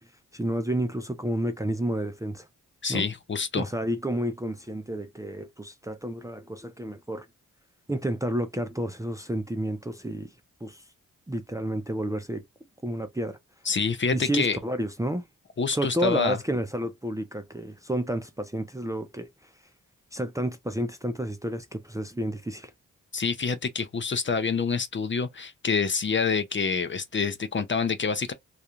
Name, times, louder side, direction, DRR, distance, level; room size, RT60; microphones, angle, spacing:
voice 1, 0.3-2.5 2.9-3.0 3.6-7.3 7.9-10.3 10.6-10.8 11.3-12.4 12.8-13.4 14.1-15.2 15.7-19.5 20.1-22.7, right 1 dB, 10° right, 0.5 m, -30 dB
voice 2, 2.8-3.7 13.7-14.6 15.6-16.4 23.1-28.3, left 5 dB, 35° left, 0.6 m, -27 dB
2.3 x 2.3 x 2.9 m
supercardioid pair, 40°, 34 cm